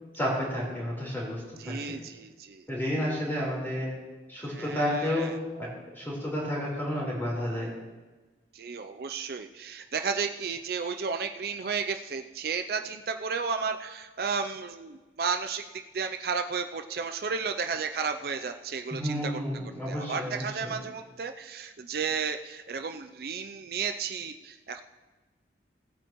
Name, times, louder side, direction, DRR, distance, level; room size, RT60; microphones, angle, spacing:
voice 1, 0.1-1.8 2.7-3.9 4.3-7.7 18.9-20.7, equal, 10° left, -5 dB, 3.9 m, -31 dB
voice 2, 1.6-2.6 4.5-5.4 8.5-19.4 19.9-24.8, right 5 dB, 55° right, 6 dB, 0.4 m, -33 dB
18.0 x 8.9 x 3.0 m, 1.2 s
head